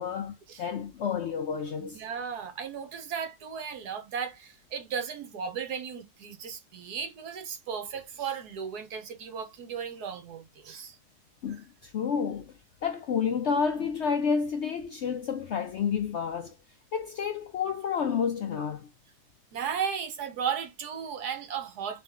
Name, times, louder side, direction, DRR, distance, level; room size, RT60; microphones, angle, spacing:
voice 1, 0.0-2.0 11.4-12.5 12.8-16.5 16.9-18.9, left 6 dB, 65° left, 0.7 m, -30 dB
voice 2, 1.8-11.0 19.5-22.0, right 7 dB, 75° right, 1.5 m, -35 dB
3.6 x 3.2 x 3.5 m
omnidirectional pair, 1.7 m